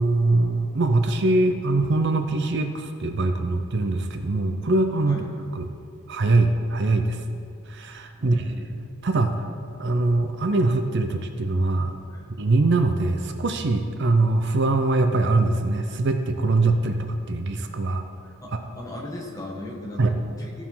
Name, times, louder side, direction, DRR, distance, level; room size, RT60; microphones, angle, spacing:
voice 1, 0.0-5.1 5.6-5.7 6.1-7.2 7.7-8.4 9.0-9.4 9.8-11.9 12.4-18.0 20.0-20.1, right 2 dB, 50° right, 7 dB, 0.6 m, -22 dB
voice 2, 8.2-8.7 12.0-12.3 18.4-20.6, left 1 dB, 15° left, -2 dB, 1.4 m, -38 dB
13.5 x 4.8 x 5.5 m, 2.2 s
head